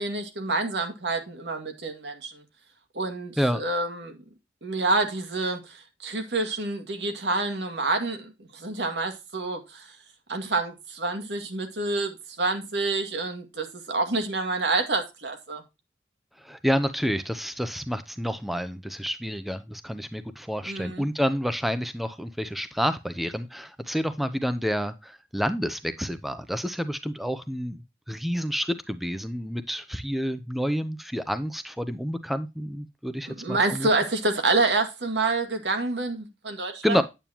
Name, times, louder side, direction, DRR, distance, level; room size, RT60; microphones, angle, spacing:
voice 1, 0.0-2.4 2.9-4.2 4.6-10.0 10.3-15.6 20.7-21.1 33.3-37.0, right 3 dB, 85° right, 2.2 m, -28 dB
voice 2, 16.4-33.9 36.8-37.0, equal, ahead, 0.6 m, -29 dB
9.1 x 8.7 x 2.9 m
head